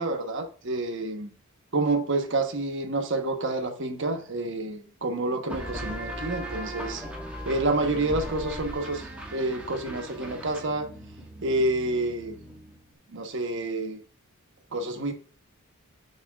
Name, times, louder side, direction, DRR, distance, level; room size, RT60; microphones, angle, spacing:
voice 1, 0.0-1.3 1.7-7.0 7.4-10.9 11.4-12.4 13.1-14.0 14.7-15.1, right 2 dB, 55° right, 1.1 m, -28 dB
sound 1, 5.5-12.9, equal, 5° right, 1.5 m, -38 dB
8.4 x 6.7 x 2.4 m
head